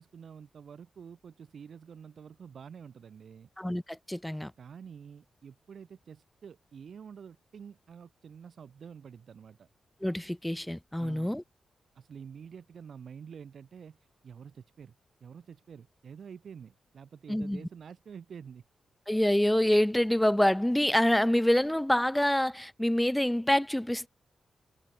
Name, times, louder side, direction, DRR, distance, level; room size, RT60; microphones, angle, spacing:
voice 1, 0.0-3.5 4.6-9.7 11.0-11.4 11.9-14.0 14.2-15.0 15.2-18.6, right 7 dB, 60° right, 5.5 m, -48 dB
voice 2, 3.6-4.5 10.0-11.4 17.3-17.6 19.1-24.1, left 1 dB, 5° left, 3.1 m, -26 dB
wide cardioid pair, 130°, 0 cm